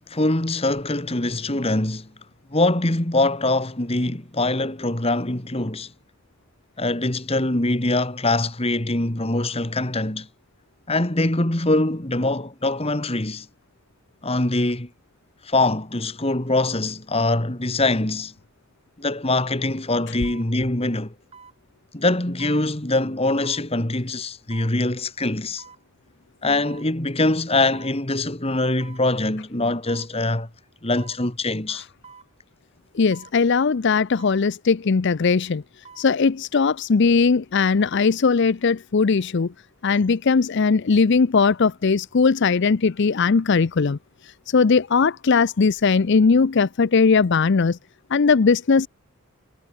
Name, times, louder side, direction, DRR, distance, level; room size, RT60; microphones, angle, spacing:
voice 1, 0.1-2.1 2.5-5.9 6.8-10.3 10.9-13.5 14.2-14.9 15.4-18.3 19.0-21.1 21.9-25.6 26.4-30.5 30.8-31.9, left 2 dB, 25° left, 1.9 m, -23 dB
sound 1, 19.1-19.2 20.2-20.5 21.3-21.6 22.4-22.6 23.4-23.7 24.5-24.7 25.6-25.8 26.7-26.9 27.7-28.0 28.8-29.1 29.9-30.1 31.0-31.2 32.0-32.3 33.1-33.4 34.2-34.4 35.6-36.1 36.5-36.6, right 5 dB, 25° right, 6.2 m, -47 dB
voice 2, 32.9-35.6 36.0-39.5 39.8-44.0 44.5-47.8 48.1-48.9, left 5 dB, 50° left, 0.5 m, -19 dB
head